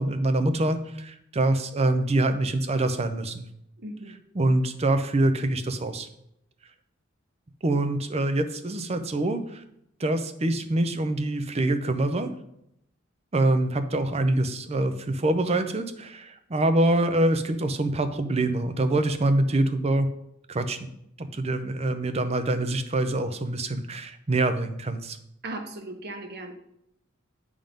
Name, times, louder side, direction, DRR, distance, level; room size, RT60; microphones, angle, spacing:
voice 1, 0.0-3.5 4.3-6.1 7.6-9.6 10.0-12.3 13.3-20.1 20.5-20.9 21.2-25.2, right 2 dB, 30° right, 9 dB, 0.6 m, -25 dB
voice 2, 3.8-4.1 25.4-26.5, right 2 dB, 55° right, 4 dB, 1.1 m, -37 dB
8.8 x 3.7 x 5.2 m, 0.78 s
head